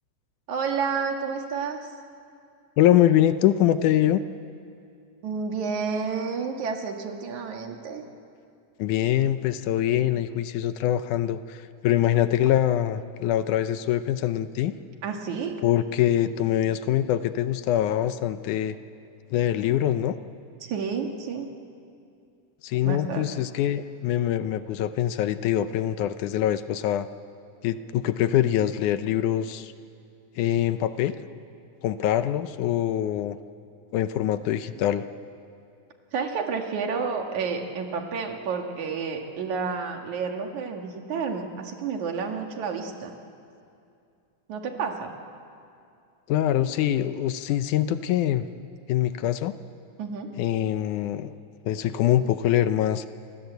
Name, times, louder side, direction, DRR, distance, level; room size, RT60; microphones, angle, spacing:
voice 1, 0.5-1.8 5.2-8.0 15.0-15.6 20.6-21.5 22.8-23.3 36.1-43.1 44.5-45.1 50.0-50.3, right 5 dB, 65° right, 3 dB, 3.1 m, -30 dB
voice 2, 2.8-4.2 8.8-14.7 15.6-18.8 19.3-20.2 22.6-27.1 27.6-29.7 30.4-31.1 31.8-33.4 33.9-35.0 46.3-48.4 48.9-49.5 50.4-51.3 51.7-53.1, left 11 dB, 75° left, 11 dB, 2.2 m, -24 dB
28.0 x 25.0 x 8.1 m, 2.4 s
omnidirectional pair, 3.7 m